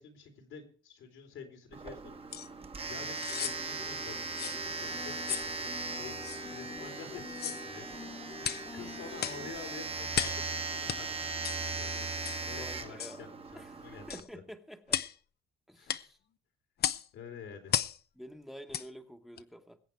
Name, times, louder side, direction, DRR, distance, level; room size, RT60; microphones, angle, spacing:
voice 1, 0.0-2.2 2.9-8.1 8.4-12.0 12.5-14.4 15.7-16.0 17.1-17.8, left 5 dB, 85° left, 3.3 m, -49 dB
Domestic sounds home sounds, 1.7-14.2, right 4 dB, 30° right, 1.3 m, -39 dB
sound 1, 2.3-2.5 3.1-3.6 4.4-4.6 5.3-5.5 6.2-6.4 7.3-7.6 8.4-8.7 9.2-9.4 10.1-10.4 10.9-11.0 11.4-11.6 12.2-12.4 13.0-13.2 14.1-14.3 14.9-15.2 15.9-16.1 16.8-17.1 17.7-18.0 18.7-18.9 19.4-19.5, left 9 dB, 55° left, 0.7 m, -34 dB
sound 2, 3.3-9.5, left 3 dB, 20° left, 0.8 m, -47 dB
voice 2, 12.5-13.3 13.5-15.0 15.7-16.2 18.2-19.8, equal, ahead, 1.2 m, -49 dB
21.0 x 8.3 x 4.6 m
cardioid pair, 90°, 20 cm